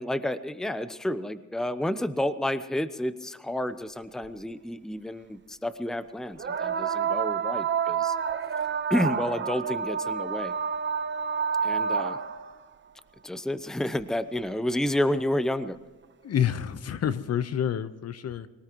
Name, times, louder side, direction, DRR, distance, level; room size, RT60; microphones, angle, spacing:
voice 1, 0.0-8.1 8.9-10.5 11.6-12.2 13.2-15.8, left 1 dB, ahead, 13 dB, 0.8 m, -30 dB
sound 1, 4.2-4.3 6.4-12.5 14.0-14.1 14.9-15.0, right 7 dB, 40° right, 1.0 m, -29 dB
voice 2, 16.2-18.5, left 9 dB, 55° left, 13 dB, 1.0 m, -28 dB
24.5 x 18.5 x 3.1 m, 1.3 s
cardioid pair, 90°, 30 cm